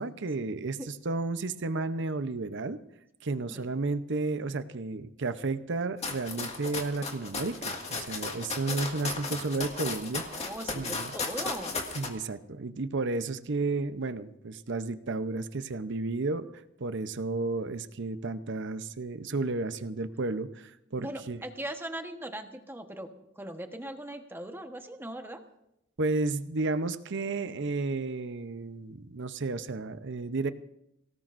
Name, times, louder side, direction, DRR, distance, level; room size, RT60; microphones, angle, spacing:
voice 1, 0.0-2.8 3.2-11.1 11.9-16.5 16.8-21.4 26.0-30.5, right 3 dB, 60° right, 11 dB, 0.8 m, -32 dB
sound 1, 6.0-12.1, left 3 dB, 30° left, 2.0 m, -35 dB
voice 2, 10.1-11.8 21.0-23.1 23.4-25.4, right 1 dB, 10° right, 5 dB, 1.2 m, -39 dB
24.0 x 18.0 x 2.6 m, 0.83 s
head